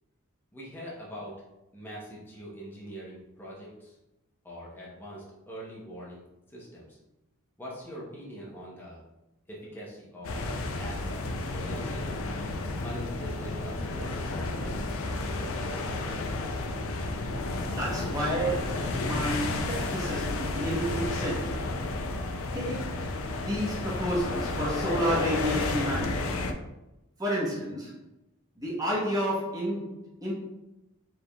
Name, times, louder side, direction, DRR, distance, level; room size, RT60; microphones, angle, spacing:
voice 1, 0.5-1.3 1.7-4.0 4.4-6.2 6.5-7.0 7.6-9.0 9.5-10.5 10.8-11.2 11.5-12.1 12.8-14.8 15.2-16.0, equal, 10° left, -6 dB, 0.8 m, -43 dB
sound 1, 10.2-26.5, left 2 dB, 65° left, 0.4 m, -32 dB
voice 2, 17.8-21.6 22.5-23.0 23.3-26.5 27.2-27.9 28.6-29.9 30.2-30.3, equal, 15° right, -6 dB, 1.1 m, -31 dB
4.8 x 3.4 x 2.3 m, 0.95 s
head